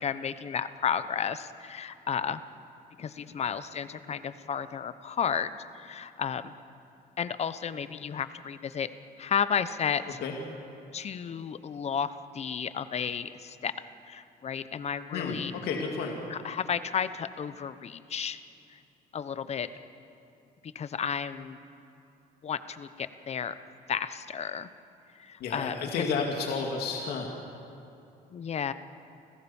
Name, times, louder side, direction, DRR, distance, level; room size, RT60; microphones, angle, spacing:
voice 1, 0.0-2.4 3.0-6.5 7.2-8.9 9.2-10.2 10.9-13.7 14.0-15.6 16.3-18.4 18.7-18.8 19.1-19.7 20.6-21.6 22.4-23.6 23.9-24.7 25.1-26.1 28.3-28.7, left 7 dB, 40° left, 13 dB, 1.0 m, -32 dB
voice 2, 15.1-16.1 25.4-27.3, left 5 dB, 70° left, 1 dB, 2.6 m, -31 dB
29.0 x 15.5 x 7.2 m, 2.6 s
cardioid pair, 110°, 17 cm